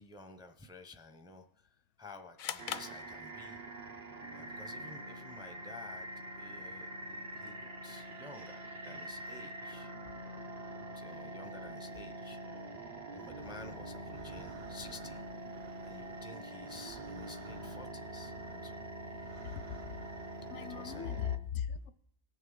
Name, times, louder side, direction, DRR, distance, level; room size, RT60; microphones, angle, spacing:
voice 1, 0.0-3.6 4.3-6.1 6.4-9.9 10.6-12.7 13.1-18.8 20.6-21.2, left 3 dB, 5° right, 0.4 m, -53 dB
sound 1, 2.4-3.8, left 8 dB, 60° left, 0.5 m, -42 dB
sound 2, 2.6-21.4, right 1 dB, 45° right, 0.6 m, -45 dB
sound 3, 13.4-21.0, right 7 dB, 75° right, 0.9 m, -57 dB
voice 2, 19.4-20.0 20.5-21.9, left 9 dB, 85° left, 0.9 m, -39 dB
18.0 x 6.4 x 3.8 m
omnidirectional pair, 1.2 m